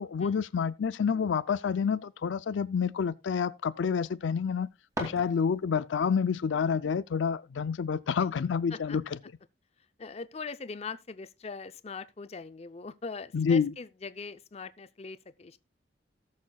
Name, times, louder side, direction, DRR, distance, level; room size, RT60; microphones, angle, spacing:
voice 1, 0.0-4.7 5.0-9.0 13.3-13.7, left 6 dB, 85° left, 0.4 m, -28 dB
sound 1, 4.4-5.9, equal, 20° right, 2.4 m, -40 dB
voice 2, 10.0-15.6, left 4 dB, 35° left, 0.5 m, -41 dB
18.0 x 6.5 x 2.3 m
head